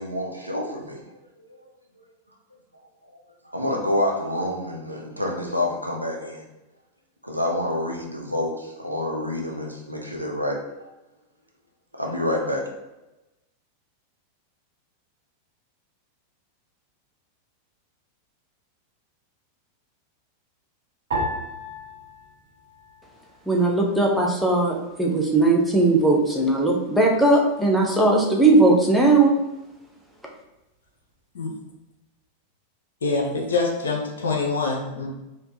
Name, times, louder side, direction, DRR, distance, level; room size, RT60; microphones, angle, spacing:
voice 1, 0.0-1.7 3.1-3.2 3.5-6.4 7.2-10.6 11.9-12.7, left 1 dB, 90° right, -1 dB, 0.7 m, -28 dB
sound 1, 21.1-23.6 23.9-24.8 25.4-25.8, right 1 dB, 65° right, 1.1 m, -34 dB
voice 2, 23.5-29.3, right 2 dB, ahead, -2 dB, 0.8 m, -18 dB
voice 3, 33.0-35.1, left 3 dB, 65° left, 0 dB, 0.8 m, -25 dB
4.4 x 2.6 x 2.7 m, 0.98 s
figure-of-eight pair, 90°, 0 cm